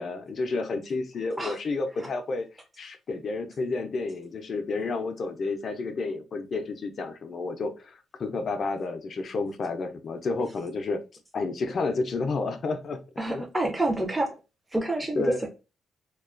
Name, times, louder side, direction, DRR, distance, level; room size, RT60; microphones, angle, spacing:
voice 1, 0.0-2.5 2.8-11.0 11.3-13.0 13.3-13.4 15.2-15.4, left 3 dB, 50° left, 0.4 m, -30 dB
voice 2, 13.2-14.3 14.7-15.5, right 2 dB, 10° right, 0.5 m, -28 dB
2.3 x 2.2 x 2.3 m
cardioid pair, 90°, 0 cm